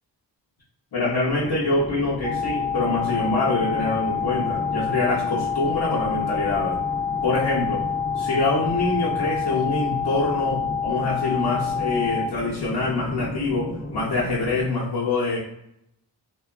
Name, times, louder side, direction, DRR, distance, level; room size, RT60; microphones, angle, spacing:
voice 1, 0.9-6.8 7.2-7.8 8.2-15.4, left 2 dB, 60° left, -7 dB, 0.8 m, -25 dB
sound 1, 1.2-14.6, left 1 dB, 25° left, 0.4 m, -35 dB
sound 2, 2.2-12.2, left 7 dB, 75° right, 0.6 m, -27 dB
2.7 x 2.2 x 2.3 m, 0.77 s
wide cardioid pair, 75°, 44 cm